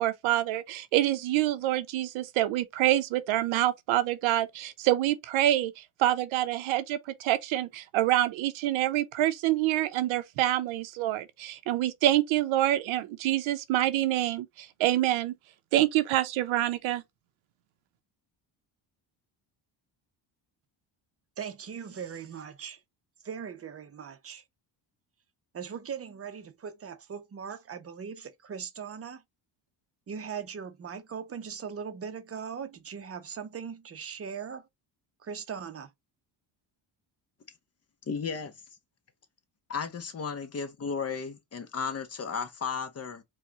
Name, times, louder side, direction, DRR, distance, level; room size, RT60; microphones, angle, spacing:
voice 1, 0.0-15.3 15.7-17.0, right 14 dB, 85° right, 0.8 m, -26 dB
voice 2, 21.4-22.8 23.2-24.4 25.5-29.2 30.1-34.7 35.2-35.9, right 7 dB, 30° right, 0.7 m, -39 dB
voice 3, 38.1-38.5 39.7-43.2, left 5 dB, 30° left, 0.8 m, -34 dB
4.7 x 2.3 x 2.8 m
cardioid pair, 110°, 46 cm